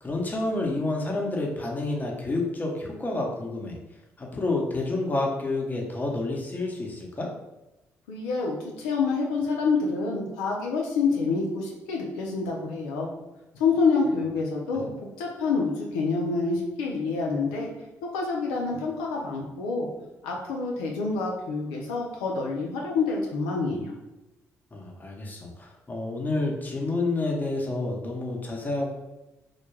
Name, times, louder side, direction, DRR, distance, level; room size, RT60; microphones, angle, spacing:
voice 1, 0.0-3.8 4.2-7.3 14.7-14.9 24.7-28.9, left 2 dB, 25° left, -1 dB, 0.7 m, -29 dB
voice 2, 8.1-13.1 13.5-14.9 15.2-17.7 18.1-19.9 20.2-23.9, left 4 dB, 90° left, -1 dB, 0.4 m, -27 dB
2.2 x 2.2 x 3.1 m, 0.98 s
hypercardioid pair, 55°, 7 cm